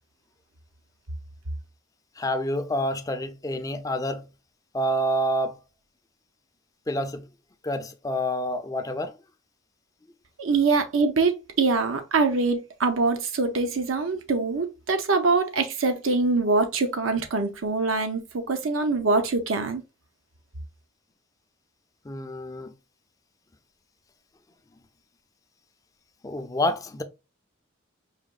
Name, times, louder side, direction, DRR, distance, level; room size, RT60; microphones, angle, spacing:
voice 1, 2.2-4.3 4.7-5.6 6.9-7.2 7.6-9.1 22.0-22.7 26.2-27.0, equal, 15° left, 0.4 m, -28 dB
voice 2, 10.4-19.8, right 3 dB, 75° right, 0.7 m, -24 dB
4.9 x 2.9 x 2.4 m
head